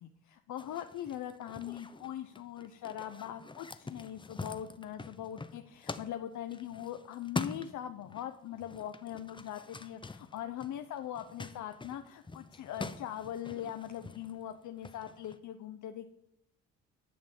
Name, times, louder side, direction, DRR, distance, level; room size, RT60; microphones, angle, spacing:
voice 1, 0.0-16.1, left 11 dB, 70° left, 7 dB, 0.8 m, -41 dB
sound 1, 0.6-8.3 8.5-15.4, left 3 dB, 15° left, 0.7 m, -45 dB
11.0 x 6.7 x 7.4 m, 0.79 s
cardioid pair, 90°, 30 cm